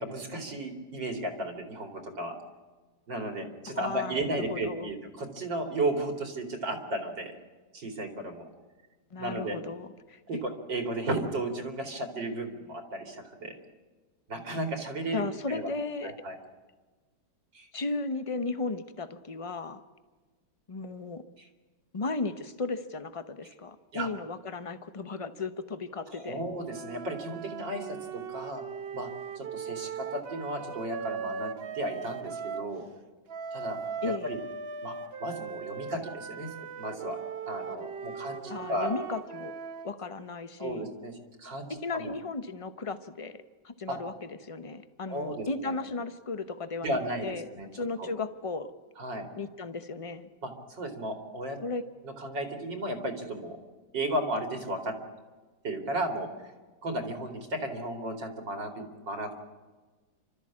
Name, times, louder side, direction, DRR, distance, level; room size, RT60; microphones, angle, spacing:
voice 1, 0.0-2.4 3.1-7.3 7.7-8.5 9.2-9.6 10.3-13.5 14.3-15.7 16.0-16.4 17.5-17.7 23.9-24.1 26.1-28.6 28.9-29.1 29.4-32.8 33.5-33.8 34.0-34.4 34.8-35.0 35.2-36.5 36.8-37.2 37.5-38.9 40.6-41.1 41.4-42.1 43.9-44.0 45.1-45.8 46.8-47.7 48.0-48.1 49.0-49.3 50.4-50.5 50.8-51.6 52.0-53.6 53.9-54.9 55.6-56.3 56.8-59.3, right 1 dB, 80° right, 4 dB, 3.5 m, -34 dB
voice 2, 3.7-4.9 9.1-10.2 15.1-16.1 17.7-19.8 20.7-21.2 21.9-26.4 34.0-34.3 38.5-39.5 39.8-40.9 41.7-48.7 49.4-50.3 51.6-51.8, left 3 dB, 30° left, 11 dB, 0.6 m, -35 dB
sound 1, 26.6-32.7 33.3-39.9, right 6 dB, 45° right, 0.8 m, -39 dB
30.0 x 13.5 x 8.5 m, 1.3 s
omnidirectional pair, 1.9 m